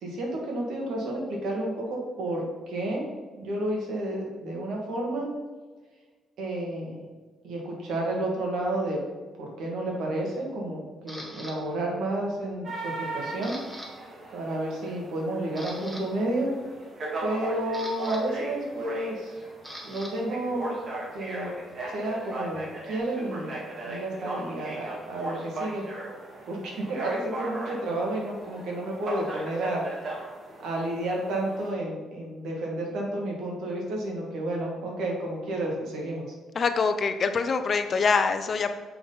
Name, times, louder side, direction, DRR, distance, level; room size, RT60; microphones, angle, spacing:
voice 1, 0.0-3.1 3.4-5.3 6.4-7.0 7.4-9.0 9.4-13.6 14.3-16.5 17.2-19.3 19.8-20.7 21.1-21.5 21.9-25.8 26.5-30.3 30.6-36.2, right 1 dB, 80° right, -1 dB, 2.0 m, -31 dB
Camera, 11.1-11.5 12.1-12.5 12.8-13.9 14.2-14.4 14.9-15.0 15.4-16.0 17.2-20.1 20.4-23.0, equal, 10° right, 1.8 m, -44 dB
sound 1, 12.6-31.7, right 2 dB, 50° right, 2.1 m, -38 dB
voice 2, 36.5-38.7, left 5 dB, 45° left, 9 dB, 0.6 m, -24 dB
6.9 x 5.6 x 4.0 m, 1.4 s
cardioid pair, 90°, 0 cm